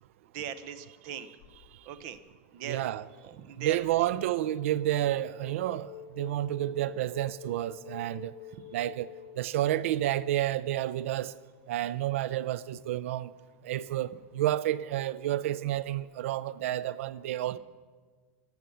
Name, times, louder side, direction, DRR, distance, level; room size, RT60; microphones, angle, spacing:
voice 1, 0.3-1.3 1.9-2.2 2.5-2.9 3.2-3.8, right 9 dB, 40° right, 0.8 m, -39 dB
sound 1, 1.4-2.2 3.8-11.5, left 9 dB, 50° left, 0.9 m, -49 dB
voice 2, 2.7-3.1 3.6-8.3 8.7-9.1 9.4-11.3 11.7-13.3 13.6-17.6, right 13 dB, 70° right, 0.4 m, -30 dB
14.0 x 10.0 x 7.0 m
supercardioid pair, 175°, 7 cm